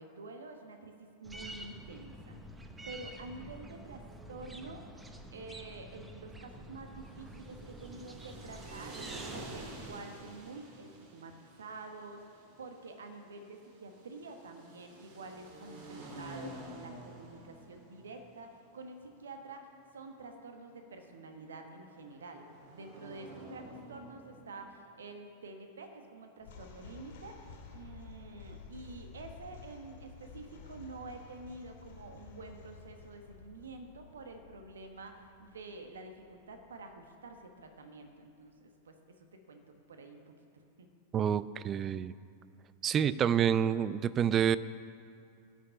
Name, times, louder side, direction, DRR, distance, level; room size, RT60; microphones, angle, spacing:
voice 1, 0.0-2.4 2.9-4.9 5.3-9.0 9.3-22.4 22.7-27.4 27.7-39.0 39.3-40.9, right 3 dB, 65° right, 5 dB, 1.2 m, -48 dB
sound 1, 1.2-10.0, right 1 dB, 10° right, 1.0 m, -48 dB
sound 2, 6.9-24.8, right 2 dB, 50° right, 1.9 m, -50 dB
sound 3, 26.4-37.7, left 5 dB, 55° left, 2.2 m, -53 dB
voice 2, 41.1-42.1 42.8-44.6, right 8 dB, 25° right, 17 dB, 0.4 m, -28 dB
14.5 x 6.5 x 8.4 m, 2.4 s
figure-of-eight pair, 90°, 0 cm